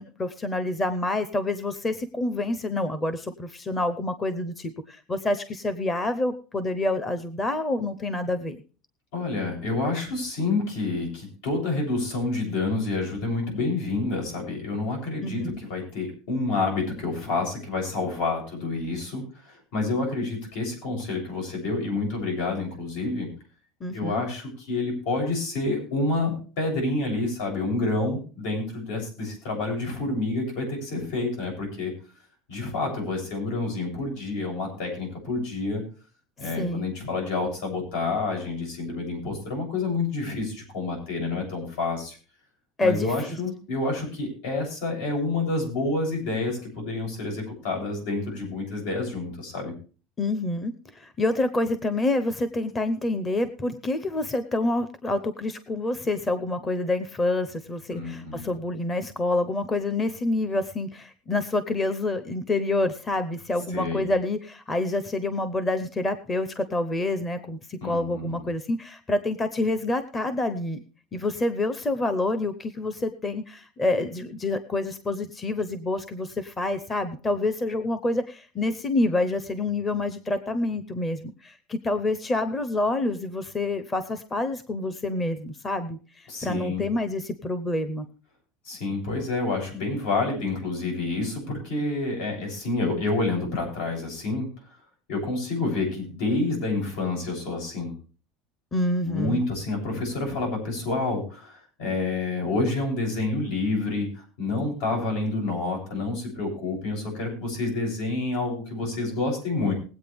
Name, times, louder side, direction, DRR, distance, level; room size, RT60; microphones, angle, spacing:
voice 1, 0.0-8.6 15.2-15.6 23.8-24.2 36.6-36.9 42.8-43.1 50.2-70.8 71.1-88.1 98.7-99.4, left 2 dB, 15° left, 11 dB, 0.7 m, -27 dB
voice 2, 9.1-23.3 23.9-31.9 32.5-35.8 36.4-42.2 42.8-49.7 57.9-58.5 63.7-64.1 67.8-68.4 86.3-86.8 88.6-94.5 95.1-97.9 99.0-109.7, left 3 dB, 80° left, 1 dB, 7.5 m, -28 dB
20.5 x 8.4 x 3.5 m, 0.37 s
cardioid pair, 170°, 0 cm